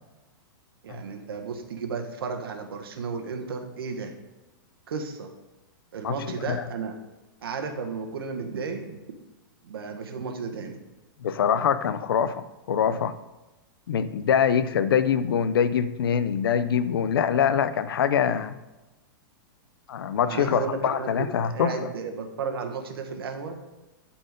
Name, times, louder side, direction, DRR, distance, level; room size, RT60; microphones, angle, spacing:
voice 1, 0.8-4.1 4.9-5.3 5.9-7.0 7.4-9.0 9.6-10.8 20.2-23.7, right 5 dB, 85° right, 5 dB, 1.4 m, -33 dB
voice 2, 11.2-13.1 13.9-18.6 19.9-21.8, left 8 dB, 75° left, 13 dB, 0.6 m, -24 dB
11.5 x 4.4 x 5.2 m, 1.1 s
supercardioid pair, 180°, 12 cm